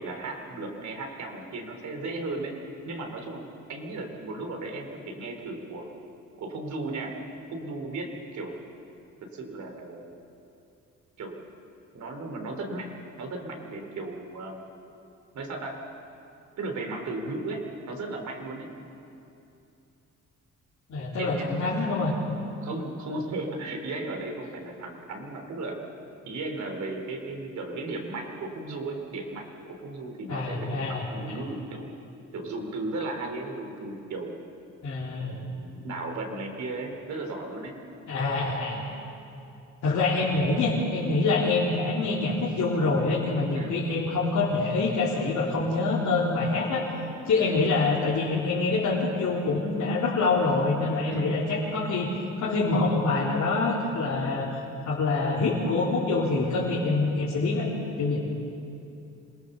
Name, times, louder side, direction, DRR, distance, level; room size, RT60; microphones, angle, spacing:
voice 1, 0.0-2.5 2.9-5.9 6.4-7.1 7.5-8.6 9.3-10.1 11.2-11.4 11.9-12.9 13.2-14.6 15.3-15.8 16.6-18.7 21.2-21.6 22.6-25.8 26.2-31.9 32.3-34.4 35.2-37.8 43.5-43.8 47.4-47.6 51.0-51.3 56.8-56.9, right 2 dB, 70° right, 2 dB, 3.9 m, -35 dB
voice 2, 20.9-22.1 30.3-31.4 34.8-35.4 38.1-38.8 39.8-46.8 47.2-52.1 52.4-54.5 54.8-57.7 58.0-58.2, left 3 dB, 65° left, -7 dB, 3.8 m, -26 dB
26.5 x 18.5 x 6.9 m, 2.7 s
cardioid pair, 90°, 30 cm